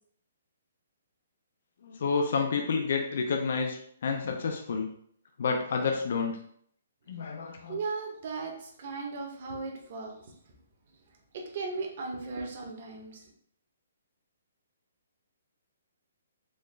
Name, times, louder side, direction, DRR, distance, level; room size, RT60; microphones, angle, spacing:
voice 1, 1.8-4.9 5.4-6.3 7.1-7.8, left 5 dB, 50° left, 3 dB, 0.4 m, -29 dB
voice 2, 7.7-10.3 11.3-13.3, right 4 dB, 40° right, 1 dB, 0.7 m, -37 dB
4.2 x 2.3 x 3.2 m, 0.65 s
hypercardioid pair, 175°, 0 cm